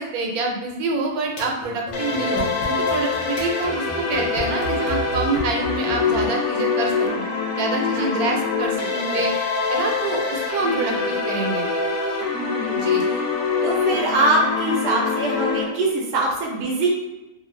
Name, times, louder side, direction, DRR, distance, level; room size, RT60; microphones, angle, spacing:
voice 1, 0.0-7.3 7.6-9.3 9.7-11.7 12.7-13.0, right 3 dB, 80° right, 1 dB, 1.1 m, -26 dB
sound 1, 1.2-6.3, left 2 dB, 55° left, 0.9 m, -33 dB
sound 2, 1.9-15.6, left 4 dB, 80° left, 1.1 m, -24 dB
voice 2, 7.8-8.3 8.9-9.2 10.6-11.0 12.3-12.8 13.1-13.2 13.6-16.9, right 2 dB, 60° right, -3 dB, 0.8 m, -24 dB
2.6 x 2.4 x 3.1 m, 1.1 s
omnidirectional pair, 1.6 m